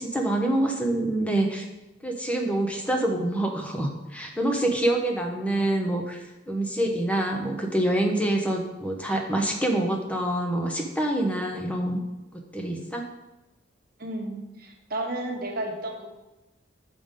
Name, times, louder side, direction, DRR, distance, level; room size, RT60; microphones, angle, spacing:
voice 1, 0.0-1.7 2.0-12.0 12.5-13.0, right 1 dB, 5° left, 2 dB, 0.7 m, -26 dB
voice 2, 14.0-16.1, right 1 dB, 50° right, 1 dB, 1.1 m, -32 dB
6.7 x 5.2 x 3.7 m, 1.0 s
head